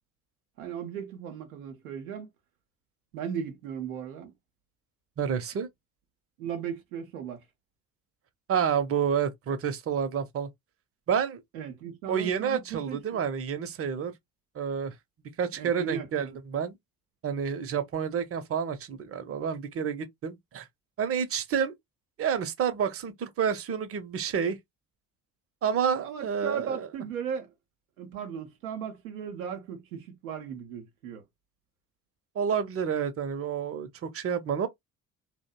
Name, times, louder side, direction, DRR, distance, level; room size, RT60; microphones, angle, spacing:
voice 1, 0.6-2.3 3.1-4.3 6.4-7.4 11.5-13.2 15.6-16.4 26.0-27.5 28.0-31.2, right 8 dB, 90° right, 0.6 m, -37 dB
voice 2, 5.2-5.7 8.5-10.5 11.1-11.4 12.1-14.1 14.5-14.9 15.4-16.7 17.2-20.7 21.0-21.7 22.2-24.6 25.6-26.9 32.3-34.7, right 7 dB, 35° right, 0.6 m, -29 dB
2.6 x 2.1 x 2.2 m
hypercardioid pair, 50°, 41 cm